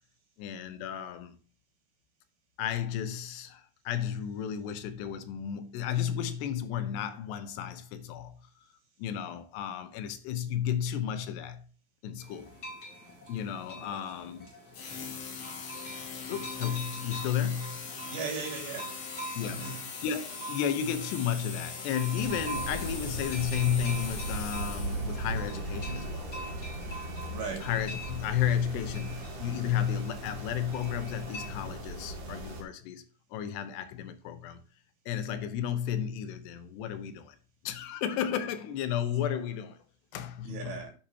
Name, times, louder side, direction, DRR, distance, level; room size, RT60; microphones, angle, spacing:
voice 1, 0.4-1.4 2.6-8.4 9.0-11.6 12.0-12.5 13.3-14.5 16.3-17.9 19.3-26.3 27.6-34.6 35.1-37.4 37.6-39.8 40.1-40.8, left 9 dB, 80° left, 2.9 m, -33 dB
sound 1, 12.2-31.5, right 1 dB, 30° left, 5.4 m, -45 dB
sound 2, 14.7-25.3, left 5 dB, 55° left, 3.4 m, -41 dB
voice 2, 18.1-18.9 19.4-19.8 27.3-27.7 40.4-40.9, right 5 dB, 80° right, 4.7 m, -37 dB
sound 3, 22.2-32.6, right 1 dB, 50° right, 3.4 m, -38 dB
10.0 x 8.4 x 2.7 m
omnidirectional pair, 5.0 m